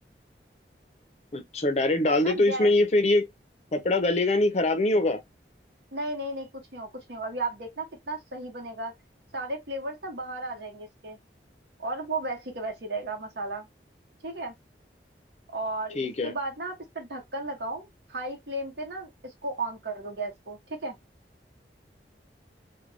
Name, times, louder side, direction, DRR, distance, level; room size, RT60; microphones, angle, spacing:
voice 1, 1.3-3.3 3.7-5.2 15.9-16.3, left 2 dB, 35° left, 0.5 m, -23 dB
voice 2, 2.0-2.7 5.9-8.9 9.3-11.2 11.8-13.7 14.2-14.5 15.5-21.0, right 2 dB, 75° right, 1.0 m, -34 dB
2.4 x 2.2 x 3.1 m
head